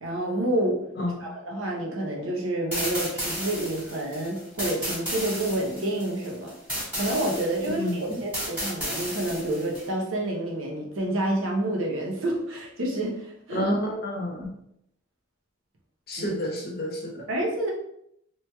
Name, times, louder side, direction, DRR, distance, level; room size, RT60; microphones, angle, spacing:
voice 1, 0.0-0.8 1.2-6.5 7.0-13.7 16.2-16.3 17.3-17.7, right 1 dB, 85° right, -1 dB, 0.8 m, -28 dB
voice 2, 1.0-1.3 7.7-8.2 13.5-14.5 16.1-17.2, left 1 dB, 50° left, -1 dB, 0.7 m, -29 dB
sound 1, 2.7-9.9, equal, 5° right, 1.5 m, -33 dB
3.0 x 2.9 x 2.2 m, 0.74 s
head